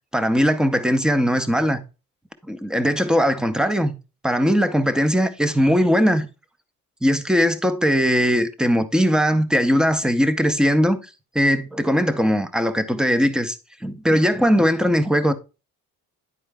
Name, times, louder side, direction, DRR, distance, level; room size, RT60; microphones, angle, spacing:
voice 1, 0.1-1.8 2.4-3.9 4.2-6.3 7.0-11.0 11.3-13.6 13.8-15.3, equal, ahead, 0.6 m, -19 dB
9.7 x 4.4 x 3.4 m
cardioid pair, 125°, 34 cm